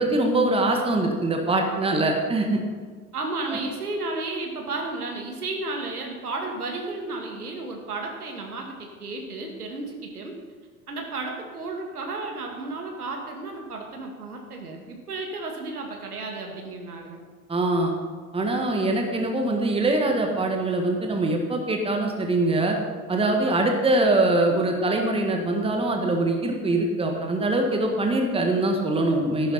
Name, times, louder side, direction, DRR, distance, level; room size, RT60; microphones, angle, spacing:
voice 1, 0.0-2.6 3.5-3.6 17.5-17.9 18.3-22.8 23.1-29.5, right 2 dB, 10° right, 3 dB, 1.8 m, -23 dB
voice 2, 3.1-10.3 10.9-17.2, right 3 dB, 75° right, 1 dB, 2.4 m, -33 dB
14.5 x 11.5 x 4.3 m, 1.5 s
figure-of-eight pair, 85°, 45 cm